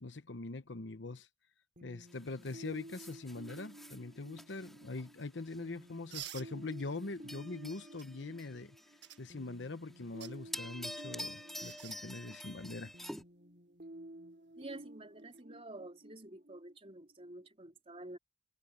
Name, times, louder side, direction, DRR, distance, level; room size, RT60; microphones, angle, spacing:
voice 1, 0.0-1.3 1.8-8.8 9.2-12.9, left 3 dB, 70° left, 1.0 m, -43 dB
sound 1, 1.8-17.3, right 1 dB, 50° right, 5.2 m, -54 dB
sound 2, 2.1-5.8 6.2-6.4 6.7-9.2 9.5-10.0 10.3-13.2, equal, ahead, 2.7 m, -48 dB
sound 3, 6.1-6.5 8.0-8.1 9.0-9.2 10.0-10.3 11.6-12.0 13.0-13.1 15.2-15.4, right 12 dB, 65° right, 1.6 m, -47 dB
voice 2, 14.6-18.2, right 2 dB, 30° right, 4.2 m, -49 dB
head